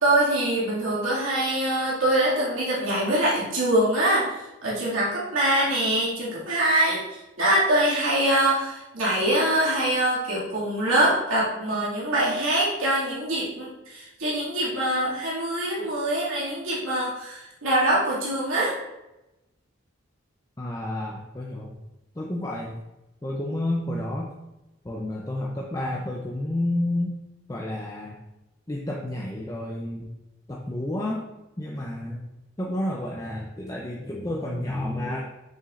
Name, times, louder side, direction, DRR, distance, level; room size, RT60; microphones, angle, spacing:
voice 1, 0.0-18.7, right 1 dB, 80° right, -7 dB, 2.2 m, -24 dB
voice 2, 20.6-21.7 22.2-22.8 23.2-24.3 24.8-27.1 27.5-28.2 28.7-30.1 30.5-31.2 31.6-32.3 32.6-35.3, left 1 dB, 15° left, -2 dB, 0.5 m, -30 dB
6.7 x 6.1 x 2.5 m, 0.96 s
head